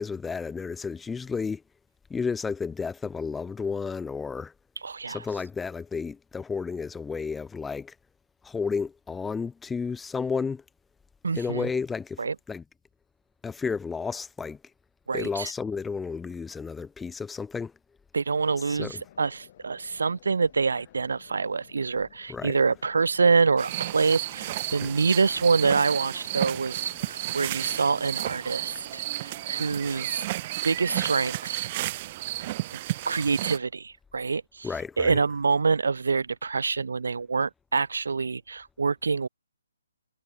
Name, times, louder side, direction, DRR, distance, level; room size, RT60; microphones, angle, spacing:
voice 1, 0.0-1.6 2.1-4.5 5.1-7.9 8.4-10.6 11.3-12.6 13.4-14.6 15.1-17.7 18.6-19.0 22.3-22.6 24.8-24.9 34.6-35.2, left 5 dB, 5° left, 0.7 m, -32 dB
voice 2, 4.8-5.2 11.2-11.7 12.2-12.3 15.1-15.5 18.1-30.3 30.6-31.7 32.4-32.8 33.1-34.7 35.0-39.3, right 4 dB, 75° right, 0.5 m, -26 dB
sound 1, 18.4-30.1, left 12 dB, 40° left, 3.5 m, -55 dB
sound 2, 23.6-33.6, right 16 dB, 35° right, 0.7 m, -32 dB
hypercardioid pair, 150°, 0 cm